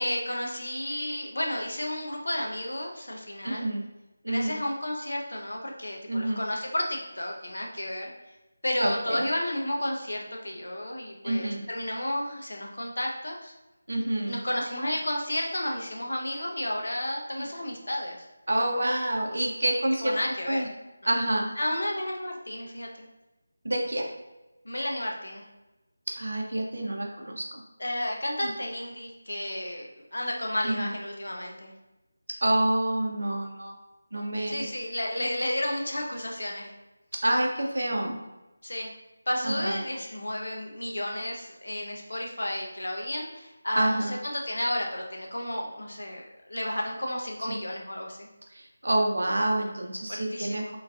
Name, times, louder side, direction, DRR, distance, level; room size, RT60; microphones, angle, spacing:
voice 1, 0.0-3.7 4.3-8.1 8.6-13.5 14.3-18.3 20.0-20.6 21.6-23.1 24.6-25.4 27.8-31.7 34.4-36.7 38.6-38.9 39.3-48.3 50.1-50.7, left 1 dB, 90° left, 0 dB, 0.6 m, -32 dB
voice 2, 3.4-3.8 4.2-4.6 6.1-6.4 8.8-9.2 11.2-11.6 13.9-14.4 17.4-17.5 18.5-20.2 20.5-20.7 21.1-21.5 23.6-24.1 26.1-27.6 28.4-28.5 30.6-30.9 32.4-33.7 34.1-34.7 37.2-38.2 39.4-39.8 43.8-44.1 47.5-47.6 48.5-50.8, right 1 dB, 80° right, 1 dB, 0.6 m, -27 dB
3.0 x 2.5 x 2.3 m, 1.0 s
figure-of-eight pair, 175°, 0 cm